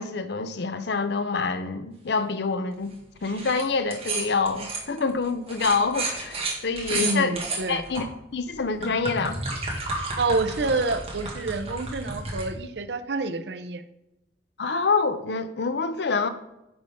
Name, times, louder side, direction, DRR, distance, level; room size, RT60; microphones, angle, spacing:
voice 1, 0.0-2.9 3.2-7.4 7.7-8.1 8.3-9.4 14.6-16.3, left 4 dB, 70° left, 0.6 m, -26 dB
sound 1, 3.2-3.6 3.9-8.0 8.6-12.5, right 3 dB, 35° right, 1.7 m, -32 dB
voice 2, 7.0-7.8 10.2-13.8, right 3 dB, 70° right, 0.6 m, -28 dB
9.5 x 5.3 x 3.6 m
head